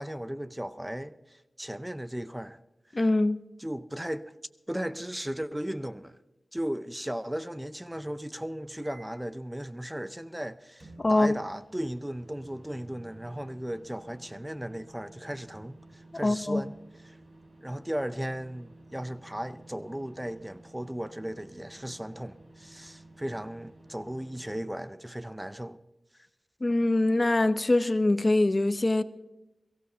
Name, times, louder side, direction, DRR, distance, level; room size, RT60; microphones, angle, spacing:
voice 1, 0.0-2.6 3.6-4.3 4.7-6.2 6.5-17.2 17.6-25.8, equal, 10° right, 0.5 m, -36 dB
voice 2, 2.9-3.4 11.0-11.3 16.2-16.6 26.6-29.0, left 2 dB, 35° left, 0.6 m, -23 dB
sound 1, 8.8-9.3 10.8-24.7, right 2 dB, 45° right, 5.7 m, -53 dB
22.5 x 15.0 x 2.8 m
wide cardioid pair, 70°, 0 cm